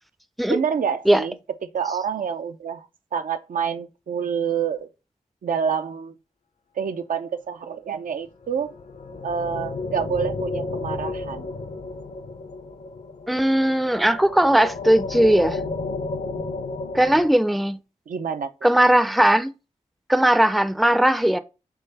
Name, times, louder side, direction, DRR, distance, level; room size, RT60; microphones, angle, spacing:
voice 1, 0.5-1.4 1.6-2.9 3.1-4.9 5.4-6.1 6.8-8.7 9.2-11.5 18.1-18.5, right 7 dB, 85° right, 0.5 m, -27 dB
sound 1, 8.4-17.3, left 3 dB, 60° left, 0.6 m, -32 dB
voice 2, 13.3-15.6 16.9-17.8 18.6-19.5 20.1-21.4, right 1 dB, ahead, 0.4 m, -18 dB
3.8 x 3.3 x 4.0 m
cardioid pair, 60°, 14 cm